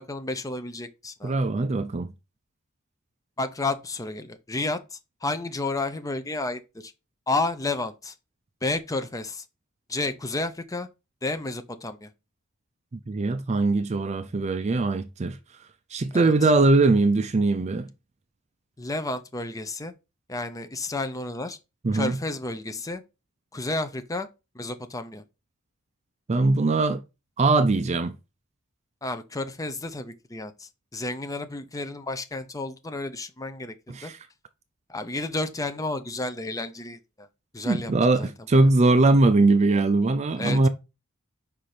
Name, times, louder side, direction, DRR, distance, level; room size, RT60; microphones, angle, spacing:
voice 1, 0.0-1.3 3.4-6.9 7.3-8.1 8.6-9.4 9.9-10.9 11.2-12.1 16.1-16.3 18.8-19.9 20.3-21.6 21.9-23.0 23.5-24.3 24.5-25.2 29.0-33.7 34.0-34.1 34.9-37.3 37.5-38.6 40.4-40.7, left 2 dB, 15° left, 0.7 m, -31 dB
voice 2, 1.2-2.1 13.1-15.4 15.9-17.9 21.8-22.2 26.3-27.0 27.4-28.2 33.9-34.2 37.6-40.7, right 3 dB, 30° right, 0.4 m, -21 dB
5.2 x 4.4 x 4.9 m
head